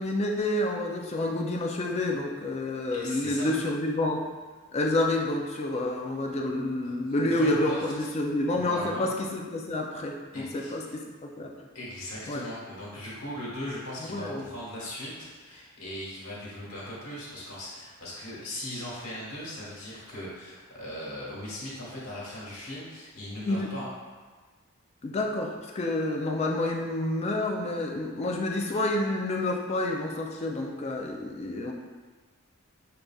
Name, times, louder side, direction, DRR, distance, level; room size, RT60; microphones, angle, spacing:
voice 1, 0.0-4.2 4.7-11.5 12.3-12.4 14.0-14.4 23.5-23.7 25.0-31.7, left 1 dB, 30° left, 1 dB, 0.3 m, -29 dB
voice 2, 2.9-3.5 6.8-8.1 8.6-9.0 10.3-10.7 11.7-23.9, left 1 dB, 75° left, -6 dB, 1.4 m, -39 dB
6.5 x 2.5 x 2.3 m, 1.4 s
head